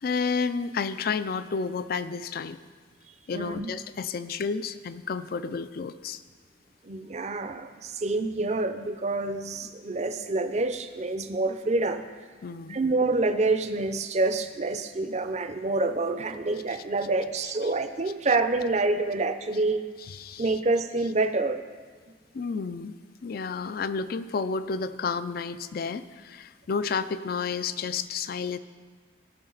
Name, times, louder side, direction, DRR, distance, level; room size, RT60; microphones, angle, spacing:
voice 1, 0.0-2.6 3.3-6.2 12.4-12.8 17.6-17.7 20.0-20.6 22.3-28.6, left 5 dB, 50° left, 14 dB, 0.4 m, -31 dB
voice 2, 3.3-3.7 6.8-12.1 12.7-19.8 20.4-21.6, right 3 dB, 35° right, 9 dB, 0.5 m, -27 dB
17.0 x 5.9 x 3.9 m, 1.5 s
head